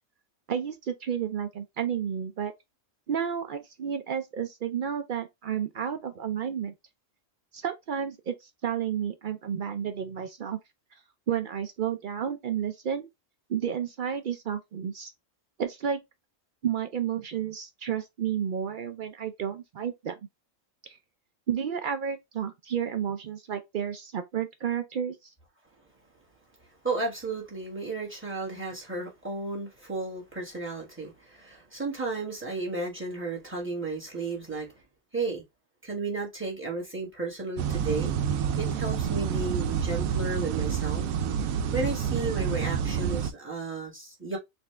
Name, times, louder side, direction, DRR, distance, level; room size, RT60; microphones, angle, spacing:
voice 1, 0.5-2.5 3.1-6.7 7.5-10.6 11.3-13.1 13.5-15.1 15.6-16.0 16.6-20.1 20.8-21.0 21.5-25.3, right 8 dB, 70° right, 0.4 m, -31 dB
voice 2, 26.8-34.8 35.1-35.4 35.8-38.1 38.6-41.1 41.7-44.4, right 3 dB, 10° right, 1.3 m, -33 dB
sound 1, 37.6-43.3, right 8 dB, 90° right, 1.0 m, -28 dB
4.2 x 2.6 x 3.2 m
omnidirectional pair, 1.4 m